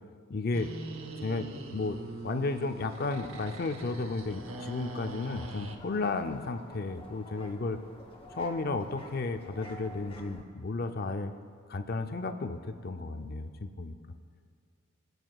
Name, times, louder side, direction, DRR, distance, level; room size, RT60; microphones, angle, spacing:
voice 1, 0.3-0.7 1.2-2.0 2.2-7.8 8.3-11.3 11.7-14.0, left 3 dB, 45° left, 8 dB, 0.5 m, -33 dB
sound 1, 0.5-5.8, right 2 dB, 80° right, 0.8 m, -42 dB
sound 2, 2.8-10.4, equal, 25° left, 0.9 m, -49 dB
22.0 x 7.9 x 2.3 m, 2.2 s
head